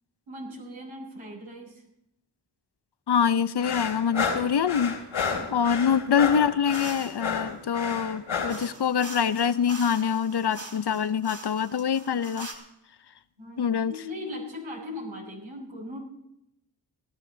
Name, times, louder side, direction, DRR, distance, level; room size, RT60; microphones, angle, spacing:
voice 1, 0.3-1.8 5.4-5.7 13.4-16.0, left 1 dB, 80° right, -3 dB, 6.6 m, -39 dB
voice 2, 3.1-12.5 13.6-13.9, left 7 dB, 55° left, 14 dB, 0.9 m, -25 dB
sound 1, 3.6-8.7, left 5 dB, 85° left, 3.2 m, -31 dB
sound 2, 6.7-7.2 8.5-12.6, right 2 dB, 40° right, 4.3 m, -43 dB
18.5 x 13.0 x 4.1 m, 0.81 s
cardioid pair, 40°, 47 cm